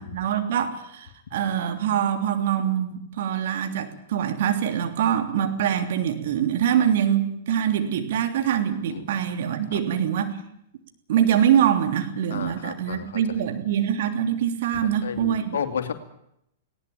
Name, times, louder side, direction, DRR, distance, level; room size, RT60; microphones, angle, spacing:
voice 1, 0.0-10.4 11.1-15.6, right 9 dB, 55° right, 6 dB, 3.1 m, -24 dB
voice 2, 12.3-13.4 14.7-15.9, left 7 dB, 65° left, 8 dB, 2.6 m, -32 dB
19.5 x 18.5 x 9.0 m, 0.76 s
figure-of-eight pair, 105°, 0 cm